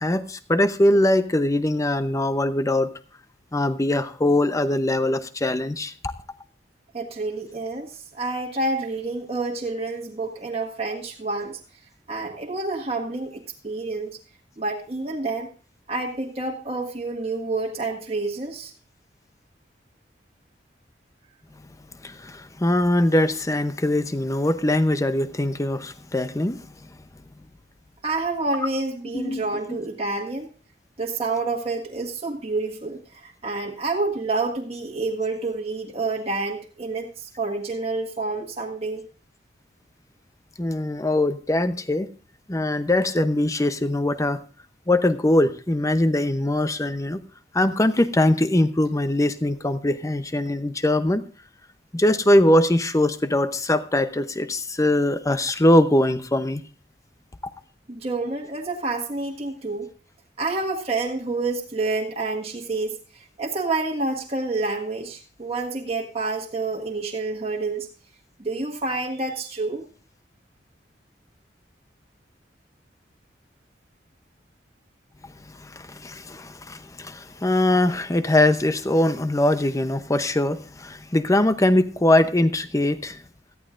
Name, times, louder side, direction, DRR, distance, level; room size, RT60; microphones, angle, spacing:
voice 1, 0.0-2.9 3.5-6.1 22.0-26.6 29.1-29.4 29.7-29.8 40.6-42.1 42.5-44.4 44.9-47.2 47.5-51.2 51.9-56.6 75.6-83.2, left 1 dB, 20° left, 11 dB, 0.7 m, -22 dB
voice 2, 6.9-11.6 12.1-14.1 14.6-15.5 15.9-18.7 28.0-30.5 31.0-39.0 57.9-59.9 60.4-67.9 68.4-69.8, right 3 dB, 35° right, -2 dB, 1.6 m, -28 dB
17.5 x 13.5 x 2.5 m, 0.37 s
head